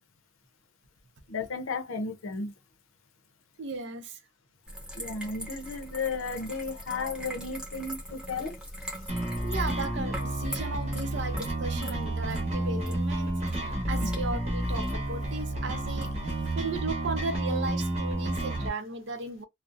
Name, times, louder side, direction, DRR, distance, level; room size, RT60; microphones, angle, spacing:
voice 1, 1.3-2.5 5.0-8.6, left 4 dB, 85° left, 0.6 m, -34 dB
voice 2, 3.6-4.2 9.4-19.4, right 3 dB, 60° right, 0.6 m, -36 dB
sound 1, 4.7-16.5, equal, 5° right, 0.6 m, -42 dB
sound 2, 9.1-18.7, right 1 dB, 35° right, 0.9 m, -30 dB
2.5 x 2.0 x 2.5 m
head